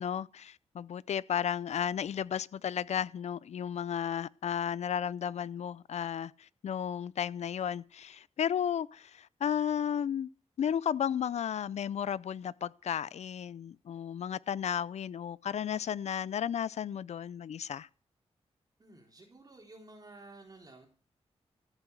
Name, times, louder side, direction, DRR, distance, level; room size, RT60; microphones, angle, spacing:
voice 1, 0.0-10.3 10.6-17.9, left 9 dB, 75° left, 0.5 m, -33 dB
voice 2, 18.8-20.9, right 2 dB, 35° right, 3.9 m, -53 dB
14.0 x 8.1 x 7.0 m
cardioid pair, 80°, 11 cm